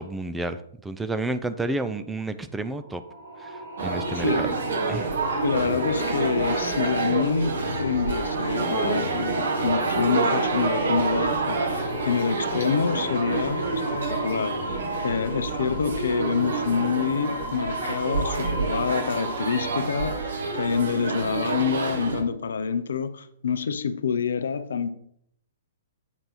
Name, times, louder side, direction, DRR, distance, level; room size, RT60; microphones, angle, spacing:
voice 1, 0.0-3.0 3.4-4.6 4.9-5.1, right 2 dB, 5° right, 0.4 m, -31 dB
sound 1, 2.6-19.7, left 1 dB, 85° right, 2.4 m, -35 dB
sound 2, 3.8-22.2, right 4 dB, 60° right, 1.0 m, -28 dB
voice 2, 5.4-13.8 14.1-24.9, left 6 dB, 60° left, 0.4 m, -27 dB
8.0 x 3.3 x 4.1 m
figure-of-eight pair, 115°, 0 cm